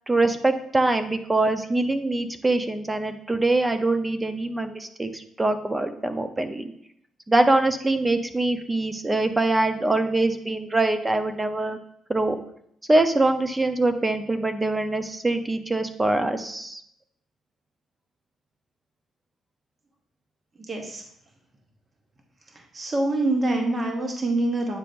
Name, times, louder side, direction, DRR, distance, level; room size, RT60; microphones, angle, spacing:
voice 1, 0.1-6.7 7.3-11.8 12.1-12.4 12.9-16.8, right 2 dB, 15° right, 8 dB, 0.6 m, -23 dB
voice 2, 20.7-21.0 22.5-24.8, right 2 dB, 35° right, 1 dB, 1.1 m, -25 dB
8.9 x 5.0 x 2.6 m, 0.71 s
cardioid pair, 90°, 0 cm